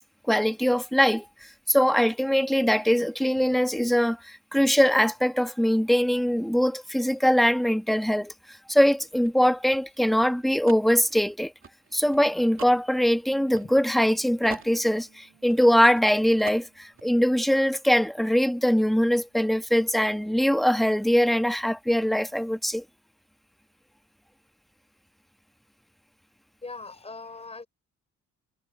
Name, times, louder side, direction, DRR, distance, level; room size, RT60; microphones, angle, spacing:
voice 1, 0.3-8.3 8.7-11.5 11.9-22.8, equal, ahead, 1.5 m, -22 dB
sound 1, 8.9-14.1 14.4-16.1 16.4-17.1, right 6 dB, 45° right, 2.7 m, -46 dB
Bass guitar, 13.3-19.6, right 7 dB, 60° right, 6.2 m, -61 dB
voice 2, 26.6-27.7, left 3 dB, 20° left, 5.6 m, -40 dB
cardioid pair, 90°, 30 cm